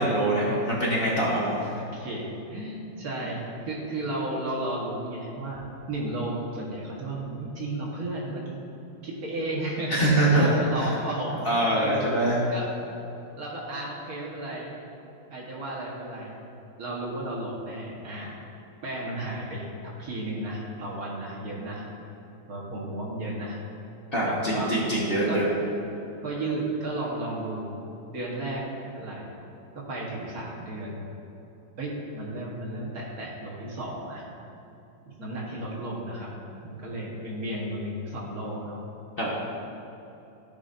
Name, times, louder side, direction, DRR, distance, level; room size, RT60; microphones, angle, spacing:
voice 1, 0.0-1.6 9.9-10.5 10.8-10.9 11.4-12.4 24.1-25.5 39.2-39.3, right 1 dB, 35° left, -6 dB, 1.2 m, -24 dB
voice 2, 1.7-8.6 9.0-12.1 12.5-12.7 13.4-14.7 15.3-16.4 16.8-18.4 18.8-21.8 22.5-23.6 24.2-24.7 25.2-25.4 26.2-27.7 28.1-29.3 29.9-31.1 31.8-34.2 35.0-36.3 36.6-38.8, right 1 dB, 55° right, -4 dB, 1.7 m, -33 dB
14.0 x 5.3 x 2.6 m, 3.0 s
omnidirectional pair, 2.0 m